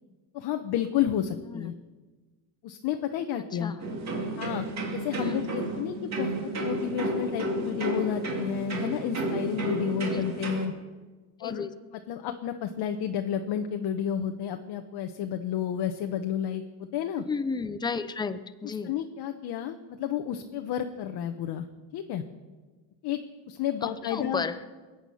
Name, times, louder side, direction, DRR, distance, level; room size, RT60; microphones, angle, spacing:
voice 1, 0.3-1.7 2.6-3.7 4.4-10.7 11.4-11.6 12.1-16.6 16.9-17.2 18.6-21.7 21.9-22.2 23.0-23.2 23.5-24.5, left 9 dB, 50° left, 5 dB, 1.0 m, -31 dB
sound 1, 3.8-10.7, right 1 dB, 30° right, 2.6 m, -32 dB
voice 2, 11.4-11.7 17.2-18.9 23.8-24.6, left 4 dB, 10° left, 11 dB, 0.5 m, -33 dB
21.5 x 9.1 x 5.7 m, 1.3 s
cardioid pair, 130°, 50 cm